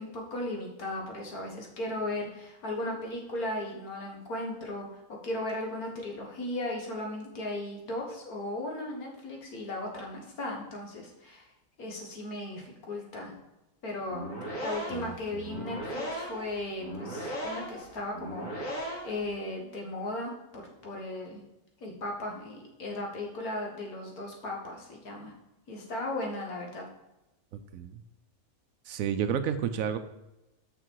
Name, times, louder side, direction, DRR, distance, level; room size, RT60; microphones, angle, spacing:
voice 1, 0.0-11.5 11.8-13.3 13.8-14.2 14.6-21.4 21.8-25.3 25.7-26.8, left 1 dB, 75° left, 0 dB, 2.0 m, -36 dB
sound 1, 14.0-19.3, equal, 60° left, 2.5 m, -37 dB
voice 2, 14.9-15.6 27.5-28.0 28.9-30.0, right 8 dB, 70° right, 10 dB, 1.0 m, -32 dB
6.5 x 6.1 x 4.6 m, 0.94 s
omnidirectional pair, 1.6 m